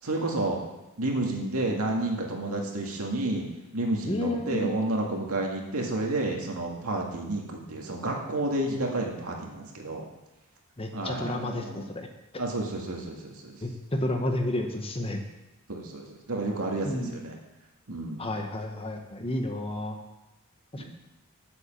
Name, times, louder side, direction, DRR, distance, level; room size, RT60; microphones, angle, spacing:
voice 1, 0.0-0.6 1.0-3.5 3.7-10.0 10.9-11.8 12.4-13.5 15.7-17.3 17.9-18.2 20.8-20.9, right 2 dB, 80° right, 0 dB, 2.1 m, -30 dB
voice 2, 4.1-4.7 10.8-12.1 13.6-15.2 16.8-17.1 18.2-20.0 20.7-20.9, left 1 dB, 25° left, 4 dB, 1.0 m, -31 dB
8.2 x 7.9 x 7.2 m, 1.0 s
head